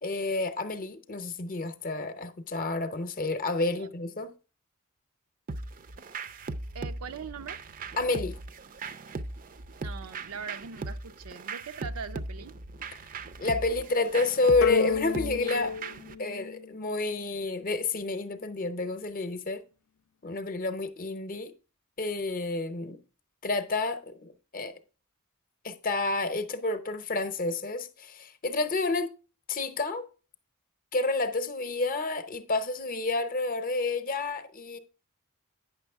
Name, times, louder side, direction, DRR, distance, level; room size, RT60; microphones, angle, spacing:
voice 1, 0.0-4.3 8.0-8.4 13.4-15.7 16.2-19.6 20.2-21.5 22.0-23.0 23.4-24.7 25.6-29.1 29.5-30.1 30.9-34.8, left 3 dB, 40° left, 0.7 m, -29 dB
sound 1, 5.5-16.2, right 3 dB, 40° right, 0.5 m, -39 dB
voice 2, 6.7-7.6 9.8-12.6, right 6 dB, 85° right, 0.6 m, -41 dB
sound 2, 14.6-17.2, left 5 dB, 75° left, 0.5 m, -31 dB
9.2 x 6.2 x 3.4 m
head